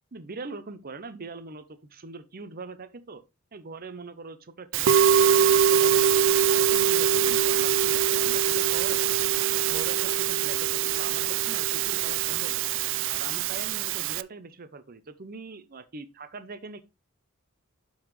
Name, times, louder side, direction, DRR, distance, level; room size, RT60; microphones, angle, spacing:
voice 1, 0.1-3.2 3.5-6.2 6.5-9.1 9.6-12.7 13.1-16.9, right 4 dB, 45° right, 0.7 m, -42 dB
Musical instrument, 4.7-14.2, right 9 dB, 65° right, 0.3 m, -23 dB
11.5 x 4.0 x 3.1 m
head